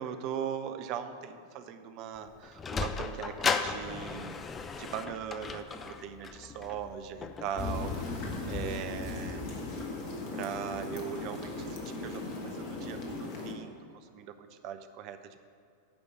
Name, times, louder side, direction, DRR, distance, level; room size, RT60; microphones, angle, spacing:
voice 1, 0.0-4.4 4.8-9.5 10.3-15.5, right 8 dB, 40° right, 9 dB, 0.7 m, -40 dB
Sliding door, 2.2-8.7, left 5 dB, 20° left, 0.5 m, -36 dB
sound 1, 7.6-13.5, left 3 dB, 40° left, 1.7 m, -37 dB
10.5 x 5.3 x 8.0 m, 2.5 s
figure-of-eight pair, 90°, 0 cm